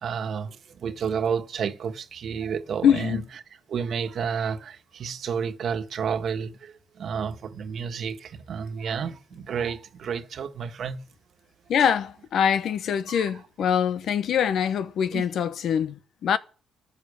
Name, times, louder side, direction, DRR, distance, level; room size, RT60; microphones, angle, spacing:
voice 1, 0.0-3.2 3.7-11.0 13.1-13.3 15.1-15.2, right 6 dB, 60° right, 1.5 m, -31 dB
voice 2, 2.8-3.2 11.7-16.4, left 8 dB, 70° left, 1.0 m, -24 dB
13.5 x 9.4 x 6.9 m
cardioid pair, 90°, 0 cm